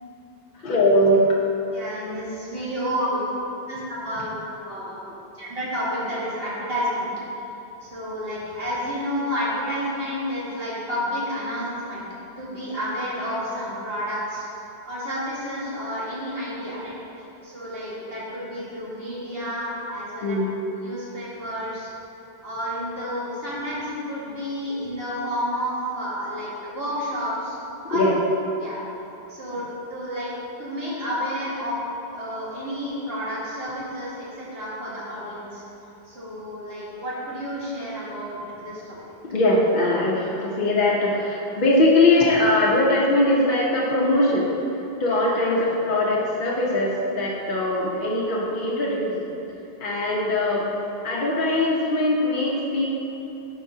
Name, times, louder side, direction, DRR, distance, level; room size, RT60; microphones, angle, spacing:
voice 1, 0.6-1.3 3.0-3.1 20.2-20.5 27.9-28.1 39.3-44.5 45.0-49.1 49.8-50.7 51.0-52.9, left 1 dB, 55° left, -5 dB, 0.9 m, -21 dB
voice 2, 1.7-3.2 3.7-5.0 5.3-7.1 7.8-12.0 12.4-14.5 14.9-16.9 17.4-20.4 20.8-21.9 22.4-27.6 27.9-28.1 28.6-28.8 29.3-29.6 29.9-30.3 30.6-31.7 32.1-35.6 36.0-39.0 45.1-45.2, equal, 70° right, -8 dB, 2.0 m, -30 dB
10.0 x 4.8 x 2.7 m, 3.0 s
omnidirectional pair, 1.0 m